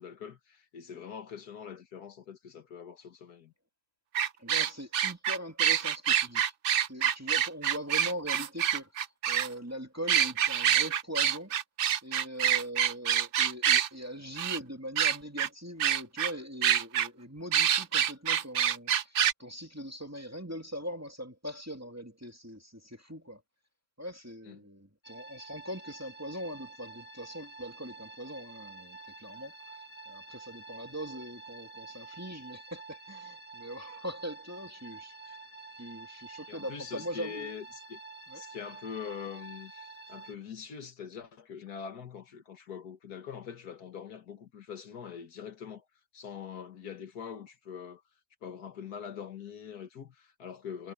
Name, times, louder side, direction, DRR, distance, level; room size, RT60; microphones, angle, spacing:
voice 1, 0.0-3.5 24.4-24.7 36.5-38.0 38.3-45.9 46.1-48.0 48.4-50.9, left 7 dB, 80° left, 2.0 m, -43 dB
sound 1, 4.2-9.5 10.1-13.9 14.4-14.6 15.0-15.5 15.8-16.3 16.6-17.1 17.5-19.3, right 9 dB, 65° right, 0.5 m, -26 dB
voice 2, 4.4-8.9 9.3-11.5 12.0-23.4 24.0-29.5 30.1-35.4 35.8-37.5 38.3-38.4, equal, 10° right, 2.2 m, -41 dB
sound 2, 25.0-40.3, right 3 dB, 10° left, 1.3 m, -48 dB
omnidirectional pair, 1.6 m